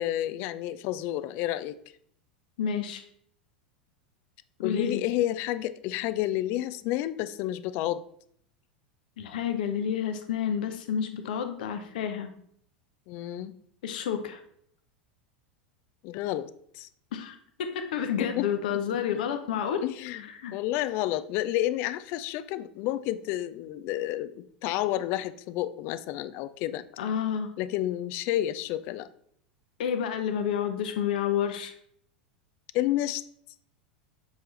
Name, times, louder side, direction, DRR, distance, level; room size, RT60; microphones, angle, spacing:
voice 1, 0.0-1.8 4.6-8.0 13.1-13.6 16.0-16.9 18.2-18.5 19.8-26.8 27.6-29.1 32.7-33.2, left 14 dB, 45° left, 14 dB, 0.3 m, -30 dB
voice 2, 2.6-3.0 4.6-5.0 9.2-12.3 13.8-14.4 17.1-19.8 20.3-20.5 27.0-27.5 29.8-31.7, left 8 dB, 60° left, 7 dB, 0.7 m, -30 dB
6.8 x 4.4 x 3.2 m, 0.66 s
figure-of-eight pair, 85°, 5 cm